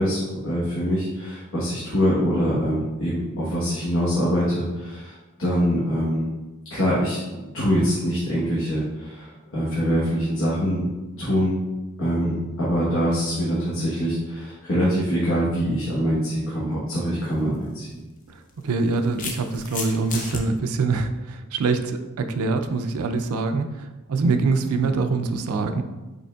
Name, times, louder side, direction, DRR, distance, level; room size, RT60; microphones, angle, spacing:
voice 1, 0.0-6.3 6.7-7.2 7.5-10.8 11.1-11.5 12.0-18.0, equal, 65° left, -8 dB, 1.1 m, -24 dB
sound 1, 17.2-17.4 18.5-20.4, left 3 dB, 40° left, 0.6 m, -33 dB
voice 2, 18.3-25.8, right 4 dB, 85° right, 7 dB, 0.4 m, -24 dB
5.1 x 4.3 x 2.3 m, 1.1 s
head